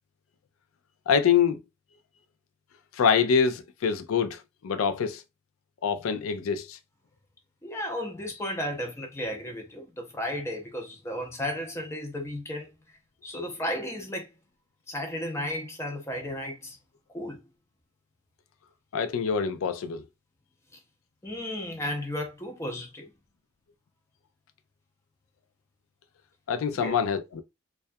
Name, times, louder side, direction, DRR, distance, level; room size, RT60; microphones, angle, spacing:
voice 1, 1.1-1.6 2.9-5.2 5.8-6.8 18.9-20.0 26.5-27.4, left 6 dB, 70° left, 0.4 m, -25 dB
voice 2, 7.6-12.7 13.2-14.3 14.9-16.8 17.1-17.4 21.2-23.1 26.7-26.9, left 1 dB, 15° left, 0.5 m, -34 dB
2.2 x 2.2 x 2.6 m
head